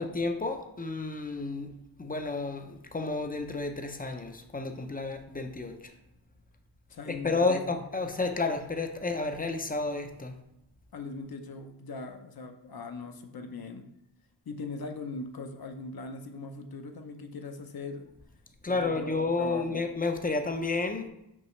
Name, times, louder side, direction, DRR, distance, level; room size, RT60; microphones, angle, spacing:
voice 1, 0.0-1.7 2.0-5.8 7.1-10.3 18.6-21.1, left 3 dB, 20° left, 6 dB, 0.5 m, -31 dB
voice 2, 6.9-7.7 10.9-13.9 14.5-18.1 18.7-19.1 19.4-19.8, left 3 dB, 55° left, 5 dB, 0.7 m, -40 dB
5.7 x 5.4 x 3.2 m, 0.83 s
wide cardioid pair, 160°, 43 cm